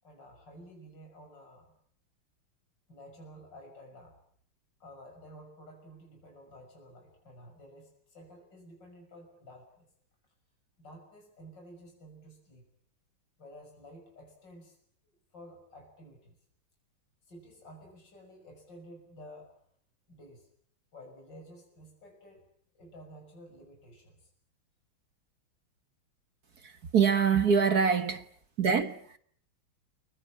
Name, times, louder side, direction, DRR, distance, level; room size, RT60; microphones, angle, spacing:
voice 1, 0.0-1.8 2.9-4.2 4.8-9.9 10.8-12.7 13.4-14.8 15.0-16.3 17.2-19.5 20.1-20.5 20.9-22.5 22.7-24.3, equal, 55° left, 6.9 m, -52 dB
voice 2, 26.6-28.2 28.6-29.2, right 6 dB, 50° right, 1.8 m, -25 dB
30.0 x 22.5 x 8.5 m
omnidirectional pair, 2.3 m